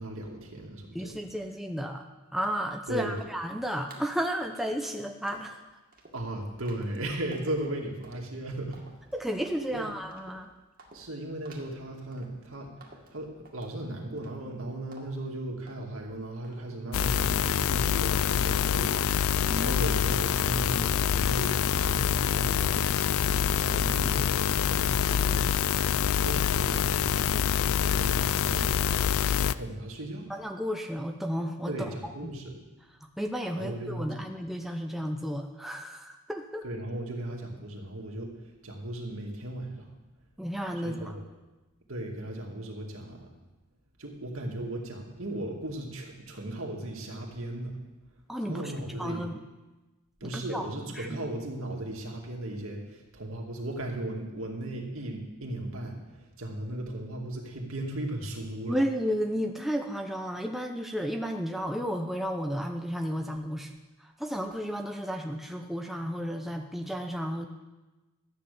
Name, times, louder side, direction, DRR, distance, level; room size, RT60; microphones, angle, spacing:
voice 1, 0.0-1.1 2.9-3.2 6.1-8.8 9.7-9.9 10.9-23.1 23.5-27.3 27.9-28.8 29.4-30.3 31.7-32.6 33.6-34.1 36.6-38.3 38.6-39.9 40.8-41.2 41.9-43.3 44.0-47.8 48.5-49.3 50.2-58.8, right 1 dB, 70° right, 0 dB, 2.4 m, -37 dB
voice 2, 0.9-2.0 2.3-5.6 9.1-10.5 19.5-19.8 30.3-32.1 33.0-36.6 40.4-41.1 48.3-48.7 49.0-49.4 50.3-50.7 50.9-51.2 58.7-67.5, equal, ahead, 3 dB, 0.6 m, -33 dB
sound 1, 2.4-2.8 3.2-3.5 3.9-4.2 4.5-4.9 5.3-5.6 5.9-6.2 6.6-6.9 7.3-7.6 8.0-8.3 8.7-9.1 9.5-9.8 10.1-10.4 10.8-11.1 11.4-11.8 12.1-12.5 12.8-13.8 14.2-14.6 14.9-15.3 15.7-16.1 16.4-19.1 19.4-19.8 20.2-20.7 21.0-21.5 21.8-21.9, right 2 dB, 45° right, 2.1 m, -54 dB
sound 2, 16.9-29.5, left 8 dB, 70° left, 0.4 m, -26 dB
13.5 x 9.2 x 6.8 m, 1.1 s
head